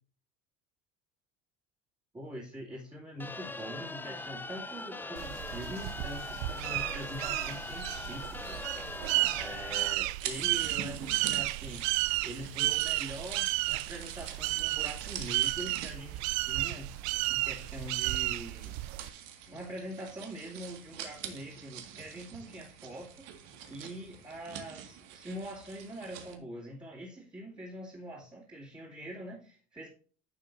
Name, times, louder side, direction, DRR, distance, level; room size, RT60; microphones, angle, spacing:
voice 1, 2.1-8.8 9.4-11.8 12.2-16.9 17.3-18.8 19.5-23.3 23.7-29.9, equal, 15° right, -5 dB, 2.6 m, -43 dB
sound 1, 3.2-9.9, left 3 dB, 5° left, 0.4 m, -41 dB
sound 2, 5.2-19.1, right 19 dB, 65° right, 0.5 m, -33 dB
sound 3, 10.2-26.3, right 9 dB, 85° right, 1.9 m, -45 dB
11.0 x 7.5 x 2.6 m, 0.41 s
cardioid pair, 130°, 31 cm